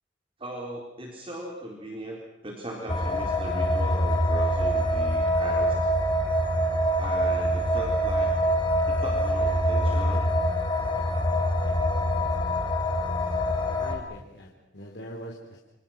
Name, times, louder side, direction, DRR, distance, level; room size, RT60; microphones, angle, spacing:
voice 1, 0.4-5.9 7.0-8.5 8.9-10.3, right 1 dB, 30° right, -1 dB, 4.1 m, -38 dB
sound 1, 2.9-14.0, equal, 25° left, 3.0 m, -25 dB
voice 2, 13.8-15.7, equal, 70° left, -1 dB, 3.7 m, -42 dB
28.0 x 25.0 x 6.0 m, 0.86 s
head